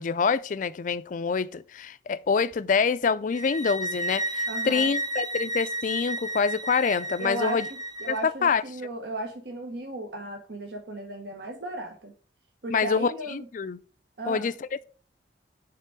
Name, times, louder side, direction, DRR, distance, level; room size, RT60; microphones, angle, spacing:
voice 1, 0.0-7.7 8.1-8.2 8.4-8.6 12.7-13.8 14.3-14.5, left 5 dB, 45° left, 0.4 m, -26 dB
sound 1, 3.3-8.2, right 1 dB, 20° right, 0.7 m, -32 dB
voice 2, 4.5-4.9 7.2-7.7 8.0-12.1 12.6-13.5 14.2-14.5, right 2 dB, 65° right, 1.0 m, -35 dB
6.7 x 3.6 x 4.7 m
head